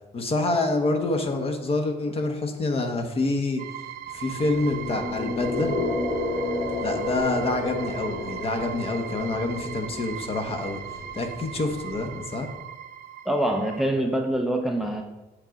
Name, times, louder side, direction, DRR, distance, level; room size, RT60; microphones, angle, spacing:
voice 1, 0.1-3.6 4.1-5.8 6.8-10.8 11.1-12.5, left 2 dB, 35° left, 4 dB, 1.1 m, -27 dB
sound 1, 3.6-13.9, right 10 dB, 60° right, 0.5 m, -39 dB
sound 2, 4.2-12.3, left 2 dB, 70° left, 1.9 m, -31 dB
voice 2, 13.2-15.0, right 1 dB, ahead, 3 dB, 0.6 m, -25 dB
8.0 x 3.8 x 5.9 m, 1.1 s
cardioid pair, 110°, 17 cm